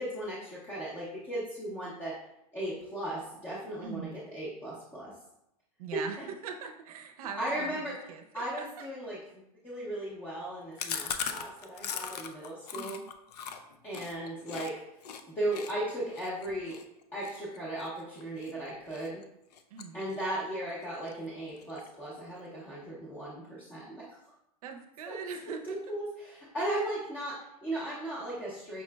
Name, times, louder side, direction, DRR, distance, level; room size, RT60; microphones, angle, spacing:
voice 1, 0.0-2.1 2.5-5.1 5.9-6.2 7.4-8.0 8.3-13.0 13.8-14.8 15.3-16.8 17.1-19.2 19.9-24.0 25.1-25.2 25.5-28.8, right 1 dB, 10° left, -8 dB, 0.6 m, -36 dB
voice 2, 3.8-4.2 5.8-8.7 12.7-13.0 19.7-20.0 24.6-25.8 26.7-26.8, right 6 dB, 65° right, 5 dB, 0.5 m, -41 dB
Chewing mastication, 10.8-14.7 15.0-15.2 15.5-18.5 18.9-19.2 19.5-20.4 20.7-20.8 21.1-21.2 21.5-22.1, left 7 dB, 85° left, 0.5 m, -39 dB
5.7 x 3.0 x 2.2 m, 0.83 s
supercardioid pair, 165°, 20 cm